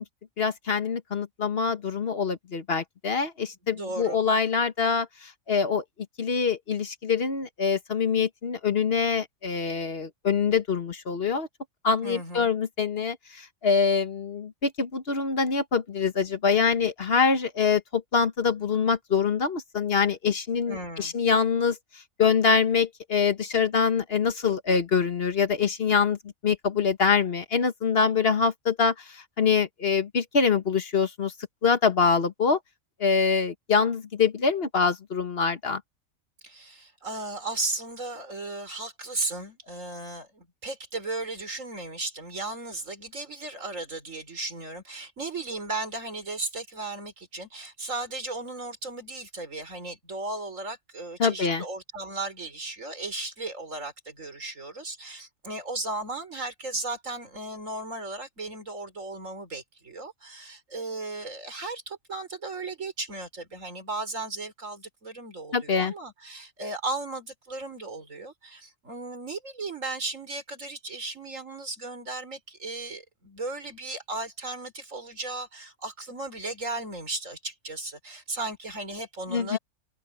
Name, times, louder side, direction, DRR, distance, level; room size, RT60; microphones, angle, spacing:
voice 1, 0.4-5.8 6.2-11.5 11.8-21.8 22.2-26.2 26.4-31.3 31.6-32.6 33.0-35.8 51.2-51.6 65.5-65.9 79.3-79.6, left 5 dB, 45° left, 1.4 m, -25 dB
voice 2, 3.6-4.2 12.0-12.5 20.7-21.1 36.4-79.6, right 2 dB, 70° right, 5.1 m, -35 dB
omnidirectional pair, 1.4 m